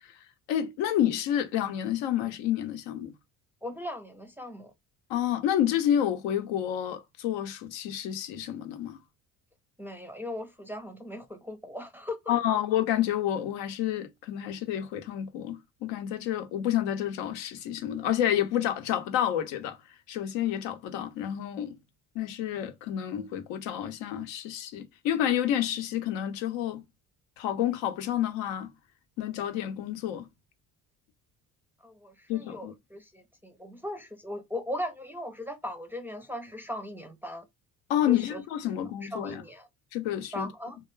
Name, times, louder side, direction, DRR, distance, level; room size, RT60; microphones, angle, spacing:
voice 1, 0.5-3.1 5.1-9.0 12.3-19.8 20.1-21.8 22.1-26.8 27.4-28.7 29.2-30.3 32.3-32.7 37.9-39.4 39.9-40.5, left 11 dB, 75° left, 0.7 m, -29 dB
voice 2, 3.6-4.7 9.8-12.6 31.8-37.5 38.1-38.4 38.7-39.7 40.3-40.8, left 1 dB, 5° right, 0.5 m, -38 dB
2.2 x 2.2 x 3.1 m
hypercardioid pair, 60°, 44 cm